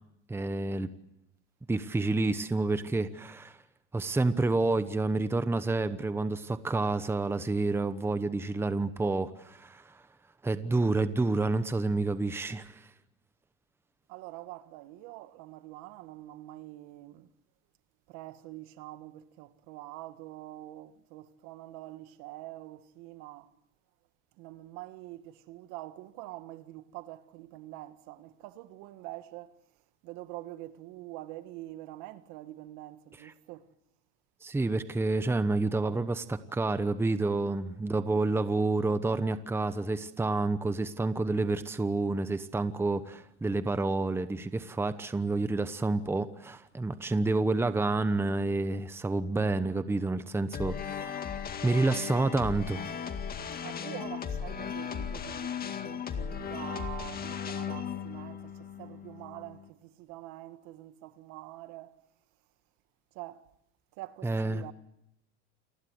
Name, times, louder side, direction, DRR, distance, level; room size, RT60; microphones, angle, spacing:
voice 1, 0.3-0.9 1.7-3.6 3.9-10.0 10.4-12.9 33.2-33.3 34.4-51.3 51.6-53.0 64.2-64.6, right 3 dB, 5° right, 1.0 m, -29 dB
voice 2, 14.1-17.3 18.1-23.5 24.4-29.6 30.0-33.7 52.2-52.3 53.6-62.0 63.1-63.5 64.0-64.7, right 16 dB, 60° right, 1.8 m, -45 dB
sound 1, 50.5-59.7, left 7 dB, 25° left, 2.0 m, -37 dB
29.0 x 20.0 x 7.9 m
supercardioid pair, 130°, 35 cm